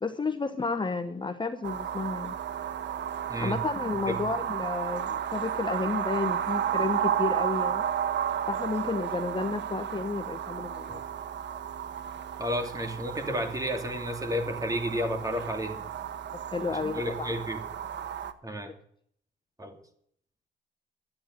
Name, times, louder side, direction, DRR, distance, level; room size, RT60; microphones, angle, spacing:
voice 1, 0.0-2.4 3.4-7.9 8.5-11.0 16.5-17.3, left 4 dB, 25° left, 8 dB, 1.1 m, -32 dB
sound 1, 1.6-18.3, right 9 dB, 65° right, 1.3 m, -33 dB
voice 2, 3.3-3.6 4.1-4.2 12.4-15.8 16.8-17.6 18.4-18.7 19.6-19.8, equal, 15° right, 6 dB, 3.0 m, -31 dB
13.0 x 9.5 x 7.9 m, 0.65 s
cardioid pair, 90°, 20 cm